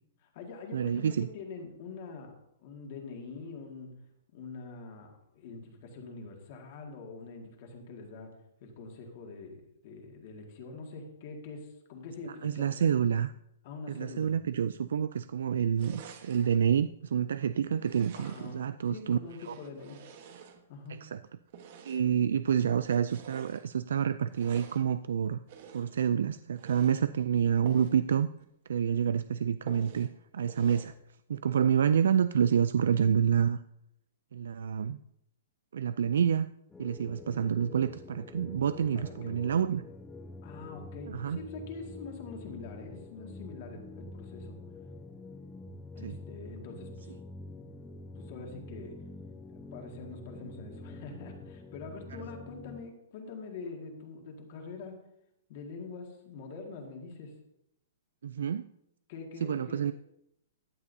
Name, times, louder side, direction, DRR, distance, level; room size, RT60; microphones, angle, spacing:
voice 1, 0.2-2.4 2.6-4.0 4.3-8.3 8.6-12.7 13.6-14.3 18.2-20.0 20.7-21.1 38.9-39.7 40.4-44.6 46.0-47.1 48.1-49.0 49.5-55.0 55.5-57.3 59.1-59.9, left 4 dB, 35° left, 2 dB, 1.8 m, -44 dB
voice 2, 0.7-1.3 12.2-13.3 13.9-19.2 19.5-19.6 20.9-21.2 21.9-25.4 25.7-28.3 28.7-30.1 30.3-30.9 31.3-33.6 34.3-35.0 35.7-36.5 36.8-39.8 41.1-41.4 46.0-46.2 58.2-58.6 59.4-59.9, right 8 dB, 70° right, 14 dB, 0.3 m, -28 dB
sound 1, 15.8-16.6 17.8-18.7 19.2-20.9 21.5-22.2 22.8-23.7 24.3-24.9 25.5-26.0 26.5-27.0 27.6-28.0 28.4-28.5 28.8-28.9 29.7-30.1 30.5-31.0, right 7 dB, 40° right, 1.2 m, -49 dB
sound 2, 36.7-52.8, left 2 dB, 5° left, 0.4 m, -46 dB
15.0 x 9.7 x 2.7 m, 0.80 s
hypercardioid pair, 175°, 0 cm